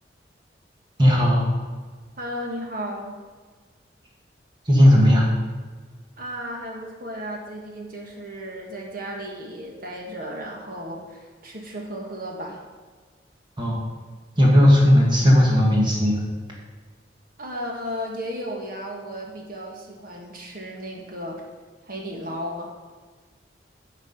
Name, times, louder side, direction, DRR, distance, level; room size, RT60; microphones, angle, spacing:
voice 1, 1.0-1.5 4.7-5.3 13.6-13.8 14.4-16.2, equal, 25° right, -3 dB, 1.8 m, -16 dB
voice 2, 2.2-3.2 6.2-12.6 17.4-21.4 21.8-22.7, equal, 50° right, 0 dB, 1.7 m, -34 dB
10.5 x 5.9 x 5.5 m, 1.5 s
head